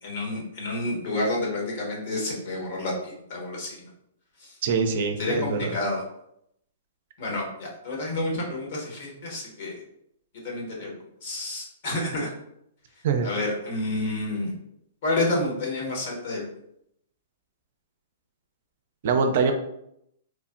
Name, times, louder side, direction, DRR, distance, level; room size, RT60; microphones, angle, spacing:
voice 1, 0.0-3.8 4.4-4.5 5.2-6.0 7.2-9.8 10.4-10.9 11.2-12.3 13.2-14.6 15.0-16.4, left 2 dB, 60° left, -2 dB, 1.1 m, -29 dB
voice 2, 4.6-5.7 13.0-13.3 19.0-19.5, right 5 dB, 60° right, 6 dB, 0.4 m, -24 dB
3.2 x 2.0 x 2.5 m, 0.76 s
hypercardioid pair, 120°, 0 cm